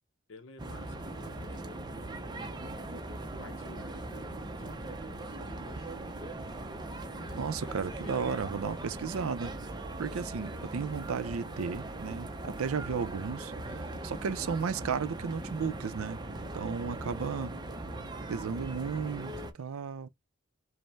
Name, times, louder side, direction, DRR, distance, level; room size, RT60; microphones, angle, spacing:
voice 1, 0.3-1.8 2.3-6.2 7.0-8.8, left 4 dB, 60° left, 0.6 m, -54 dB
sound 1, 0.6-19.5, right 2 dB, 20° right, 0.5 m, -40 dB
voice 2, 7.3-9.5 10.0-16.2 16.5-17.5 18.3-20.1, right 5 dB, 85° right, 0.5 m, -34 dB
5.2 x 2.1 x 3.3 m
head